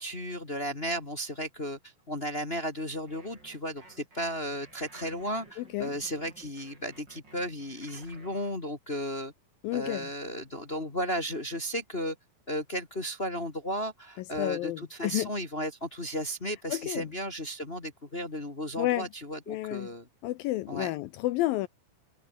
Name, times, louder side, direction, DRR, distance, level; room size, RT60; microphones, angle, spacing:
voice 1, 0.0-9.3 9.7-12.1 12.5-20.1 20.7-20.9, equal, 25° left, 1.3 m, -34 dB
sound 1, 3.1-8.5, right 2 dB, 25° right, 7.8 m, -55 dB
voice 2, 5.6-5.9 9.6-10.1 14.4-15.3 16.7-17.1 18.8-19.1 19.5-19.9 20.2-21.7, left 16 dB, 75° left, 2.3 m, -30 dB
omnidirectional pair, 4.5 m